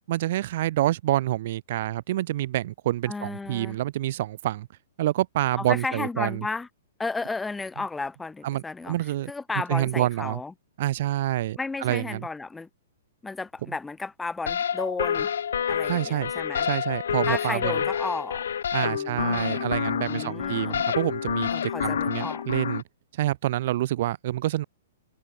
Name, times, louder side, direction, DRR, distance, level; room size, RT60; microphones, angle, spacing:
voice 1, 0.1-4.7 5.0-6.4 8.4-9.3 9.7-10.4 10.8-12.3 15.9-16.3 16.6-17.8 18.7-22.8 23.1-24.6, right 14 dB, 55° right, 0.4 m, -27 dB
voice 2, 3.1-3.8 5.6-6.7 7.0-9.0 9.3-10.5 11.6-12.7 13.2-15.3 15.7-16.7 17.3-18.4 18.8-19.7 20.0-20.8 21.5-22.5, left 3 dB, 5° left, 1.9 m, -33 dB
sound 1, 14.5-22.8, left 8 dB, 80° left, 1.1 m, -28 dB
hypercardioid pair, 145°, 0 cm